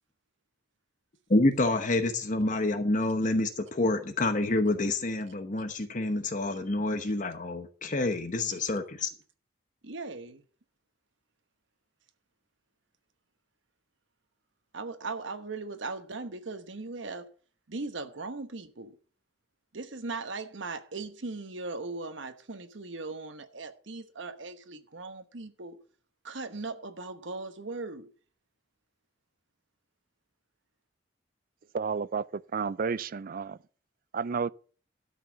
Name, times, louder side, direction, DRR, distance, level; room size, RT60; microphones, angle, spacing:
voice 1, 1.3-9.1, left 2 dB, 45° left, 1.0 m, -28 dB
voice 2, 9.8-10.4 14.7-17.2 17.7-19.0 19.7-25.8 26.2-28.1, right 3 dB, 80° right, 1.2 m, -38 dB
voice 3, 31.7-33.6 34.1-34.5, right 5 dB, 50° right, 0.4 m, -31 dB
12.5 x 5.6 x 7.1 m
head